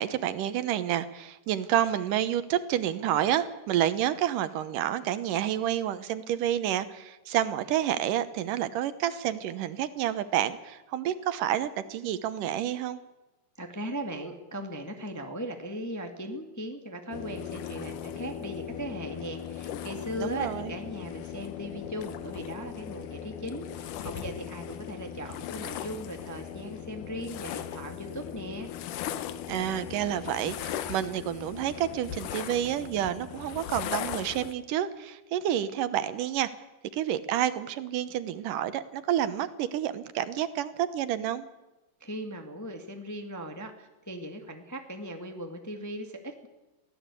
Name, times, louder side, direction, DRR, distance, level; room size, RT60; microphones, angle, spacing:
voice 1, 0.0-13.0 20.2-20.7 29.5-36.5 36.9-41.5, right 11 dB, 80° right, 13 dB, 2.6 m, -29 dB
voice 2, 13.6-28.7 42.0-46.5, equal, 10° left, 4 dB, 1.2 m, -38 dB
sound 1, 17.1-34.5, left 10 dB, 75° left, 2.5 m, -38 dB
23.0 x 16.0 x 8.4 m, 1.1 s
omnidirectional pair, 3.8 m